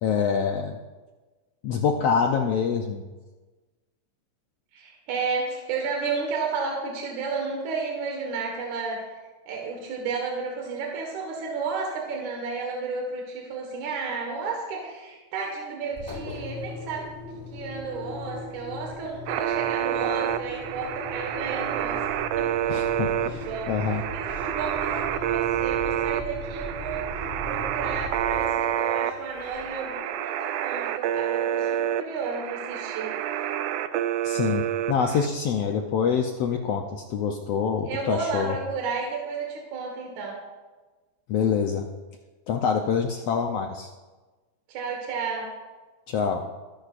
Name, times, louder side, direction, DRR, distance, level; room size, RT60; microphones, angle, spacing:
voice 1, 0.0-0.8 1.6-3.0 22.7-24.0 24.3-24.4 34.2-38.6 41.3-41.8 42.5-43.9 46.1-46.4, left 6 dB, 75° left, 3 dB, 1.5 m, -26 dB
voice 2, 4.7-9.0 9.5-17.1 17.5-23.7 24.1-27.1 27.5-33.1 37.8-40.4 44.7-45.5, right 4 dB, 70° right, 0 dB, 3.0 m, -32 dB
Engine, 15.9-29.9, left 1 dB, 15° left, 4.3 m, -38 dB
sound 1, 19.3-35.3, right 11 dB, 90° right, 1.4 m, -28 dB
22.5 x 10.5 x 2.5 m, 1.2 s
omnidirectional pair, 3.6 m